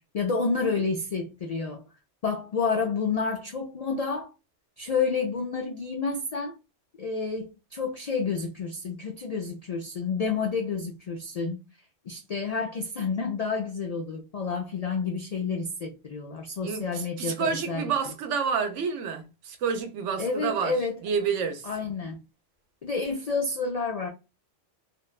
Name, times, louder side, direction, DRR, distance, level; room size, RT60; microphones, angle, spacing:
voice 1, 0.1-1.8 2.2-4.3 4.8-6.6 7.0-11.6 12.1-17.9 20.2-21.0 21.6-22.2 22.8-24.1, left 4 dB, 85° left, 0.3 m, -29 dB
voice 2, 16.6-20.8 21.0-21.7, right 6 dB, 85° right, 1.0 m, -29 dB
2.9 x 2.1 x 2.2 m
omnidirectional pair, 1.2 m